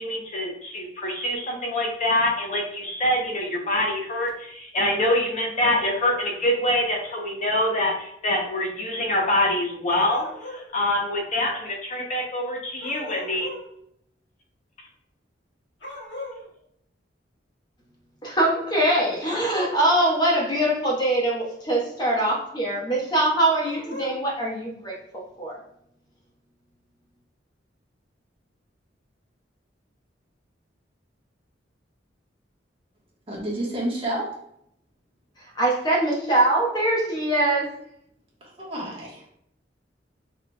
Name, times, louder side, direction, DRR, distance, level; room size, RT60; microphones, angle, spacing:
voice 1, 0.0-13.5, left 1 dB, 40° left, 0 dB, 0.7 m, -25 dB
sound 1, 9.9-10.7 12.8-13.7 15.8-16.4 19.2-19.9 23.6-24.2, left 2 dB, 75° left, 1.5 m, -38 dB
voice 2, 18.2-25.6 35.5-37.7, right 1 dB, 25° left, -3 dB, 1.1 m, -23 dB
voice 3, 33.3-34.3 38.4-39.3, right 1 dB, 30° right, -4 dB, 1.3 m, -30 dB
5.8 x 3.2 x 2.2 m, 0.73 s
head